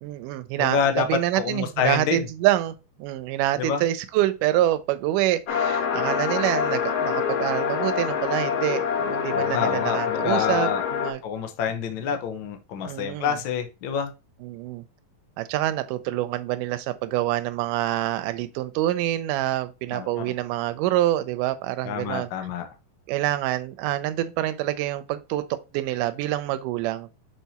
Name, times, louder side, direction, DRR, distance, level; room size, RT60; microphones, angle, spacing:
voice 1, 0.0-11.2 12.9-13.4 14.4-14.8 15.4-22.3 23.1-25.5 25.7-27.1, right 14 dB, 85° right, 2.2 m, -26 dB
voice 2, 0.6-1.1 1.3-2.2 3.6-3.8 9.3-10.8 11.2-14.1 19.9-20.3 21.8-22.6, left 7 dB, 90° left, 1.0 m, -27 dB
sound 1, 5.5-11.1, left 7 dB, 65° left, 1.7 m, -25 dB
6.1 x 4.7 x 4.1 m
omnidirectional pair, 3.6 m